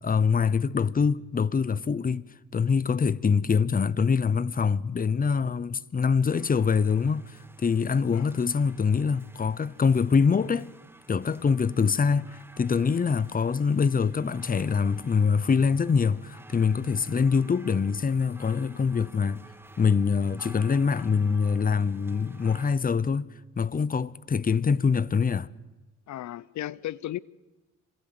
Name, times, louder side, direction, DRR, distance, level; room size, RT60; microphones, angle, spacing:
voice 1, 0.0-2.3 2.5-10.7 11.1-19.4 19.8-23.3 23.6-25.5, left 5 dB, 30° left, 0.8 m, -24 dB
sound 1, 6.3-22.7, right 2 dB, 10° right, 1.4 m, -53 dB
voice 2, 26.1-27.2, left 13 dB, 70° left, 0.8 m, -35 dB
26.5 x 21.5 x 7.9 m
cardioid pair, 90°, 30 cm